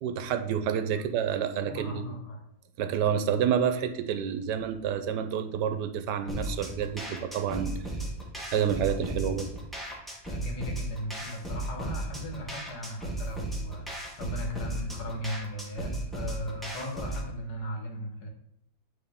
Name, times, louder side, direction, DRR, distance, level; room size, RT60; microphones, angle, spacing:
voice 1, 0.0-2.1 2.8-7.7 8.5-9.5, right 8 dB, 85° right, 8 dB, 1.2 m, -29 dB
voice 2, 1.7-2.4 10.3-13.9 14.2-18.3, left 1 dB, 70° left, 1 dB, 1.7 m, -37 dB
sound 1, 6.3-17.3, right 1 dB, ahead, 1.0 m, -36 dB
9.2 x 3.6 x 3.5 m, 0.74 s
omnidirectional pair, 1.8 m